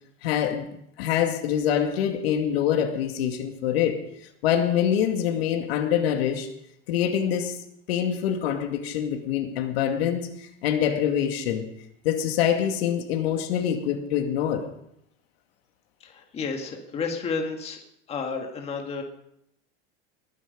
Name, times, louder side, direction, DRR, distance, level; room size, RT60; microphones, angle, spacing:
voice 1, 0.2-0.7 1.0-4.0 4.4-6.5 6.9-7.6 7.9-10.3 10.6-11.6 12.0-14.7, left 9 dB, 90° left, 2.3 m, -25 dB
voice 2, 16.0-17.8 18.1-19.0, left 4 dB, 20° left, 1.8 m, -31 dB
21.5 x 11.0 x 5.2 m
supercardioid pair, 170°, 30 cm